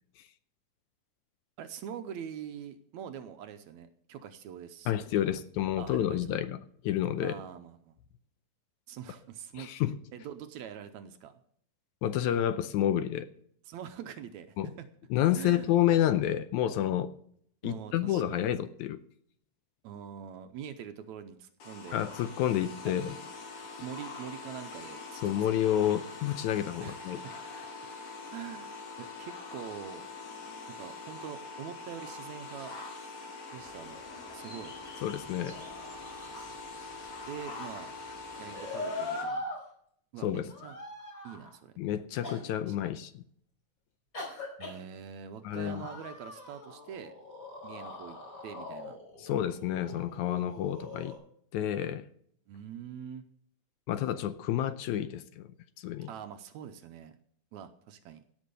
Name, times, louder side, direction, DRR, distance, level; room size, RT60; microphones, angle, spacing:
voice 1, 1.6-5.1 5.8-6.2 7.2-8.0 8.9-9.7 10.1-11.4 13.7-14.9 15.4-15.7 17.6-18.6 19.8-22.0 22.9-23.0 23.8-25.4 26.8-27.3 28.3-30.0 30.7-32.8 33.5-34.0 34.3-34.7 37.3-37.9 38.4-39.4 40.1-40.8 41.2-41.7 42.6-42.9 44.6-47.1 47.6-48.2 48.4-49.0 52.5-53.2 56.1-57.2 57.5-58.2, right 9 dB, 75° right, 1.9 m, -44 dB
voice 2, 4.9-6.6 6.8-7.4 9.6-10.0 12.0-13.3 14.6-14.7 15.1-17.1 17.6-19.0 21.9-23.1 25.2-27.2 35.0-35.6 40.2-40.5 41.8-43.1 45.4-45.8 49.2-51.1 51.5-52.0 53.9-55.4 55.8-56.1, left 11 dB, 80° left, 1.9 m, -29 dB
sound 1, 21.6-39.2, left 3 dB, 55° left, 3.2 m, -44 dB
sound 2, 33.5-38.7, equal, ahead, 2.7 m, -55 dB
sound 3, 33.6-34.9 35.3-37.0 38.3-39.6 40.5-41.6 42.2-42.4 44.1-44.8 45.5-51.2, left 2 dB, 35° left, 5.5 m, -42 dB
17.0 x 6.2 x 6.8 m
omnidirectional pair, 3.6 m